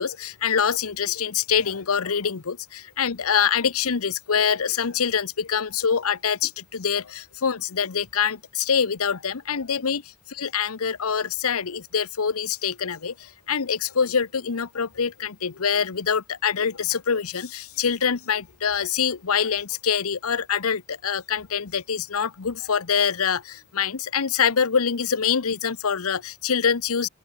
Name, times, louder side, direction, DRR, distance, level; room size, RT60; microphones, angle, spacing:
voice 1, 0.0-10.0 10.3-27.1, left 7 dB, 85° left, 0.8 m, -25 dB
open air
head